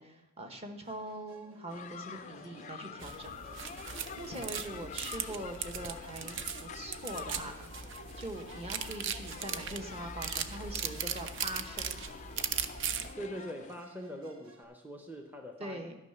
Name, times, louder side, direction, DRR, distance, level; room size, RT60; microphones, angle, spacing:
voice 1, 0.0-3.4 4.2-7.7 8.2-12.0 15.6-16.0, right 1 dB, 25° right, 5 dB, 1.1 m, -42 dB
Musical instrument, 0.8-14.6, right 2 dB, 70° right, 1.2 m, -57 dB
sound 1, 1.7-13.8, left 7 dB, 35° left, 0.3 m, -47 dB
sound 2, 3.0-13.1, right 7 dB, 55° right, 0.6 m, -39 dB
voice 2, 13.2-15.8, equal, 10° right, 2 dB, 0.6 m, -43 dB
13.0 x 5.7 x 6.7 m, 0.98 s
head